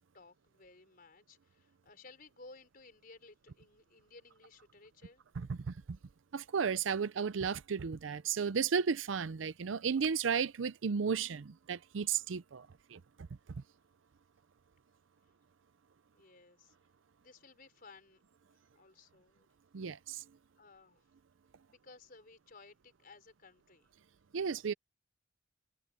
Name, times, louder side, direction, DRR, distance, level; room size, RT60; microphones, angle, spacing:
voice 1, 0.1-5.2 16.1-16.8 17.2-18.2 18.5-19.5 20.6-21.1 21.7-23.9, left 3 dB, 50° left, 4.6 m, -58 dB
voice 2, 5.4-5.8 6.3-13.0 19.7-20.2 24.3-24.7, right 6 dB, 85° right, 0.5 m, -34 dB
head